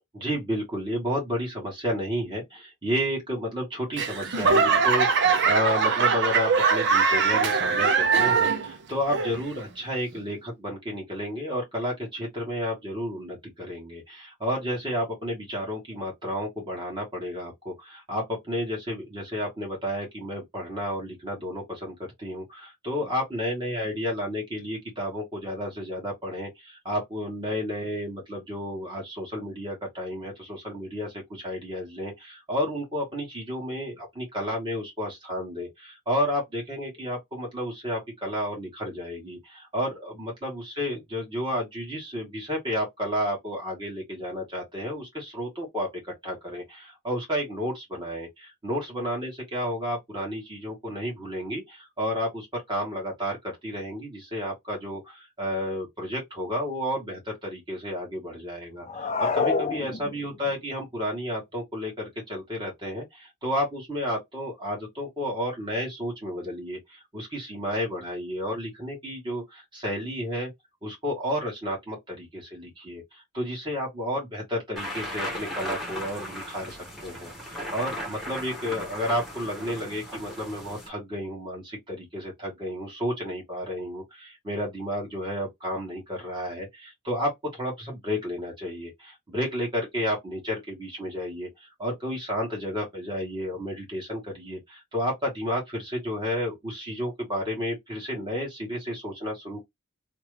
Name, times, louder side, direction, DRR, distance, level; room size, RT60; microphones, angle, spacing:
voice 1, 0.1-70.5 70.8-99.6, equal, 20° right, 1.5 m, -31 dB
Laughter / Clapping / Crowd, 4.0-8.7 9.1-9.6 10.2-10.3, right 5 dB, 50° right, 0.7 m, -22 dB
sound 1, 58.8-60.5, left 4 dB, 30° left, 0.6 m, -27 dB
sound 2, 74.8-80.9, equal, ahead, 1.2 m, -36 dB
3.0 x 2.4 x 3.1 m
head